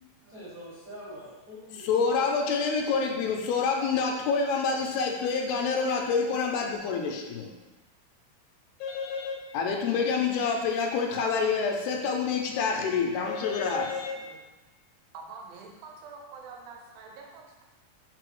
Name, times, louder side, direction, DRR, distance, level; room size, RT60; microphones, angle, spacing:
voice 1, 0.2-2.3 13.7-14.4, equal, 65° right, -13 dB, 0.8 m, -46 dB
voice 2, 1.8-7.5 8.8-14.2, left 5 dB, 90° left, 2 dB, 2.5 m, -27 dB
voice 3, 15.1-17.6, right 4 dB, 80° right, 0 dB, 2.4 m, -45 dB
5.8 x 2.0 x 4.5 m, 1.1 s
omnidirectional pair, 4.3 m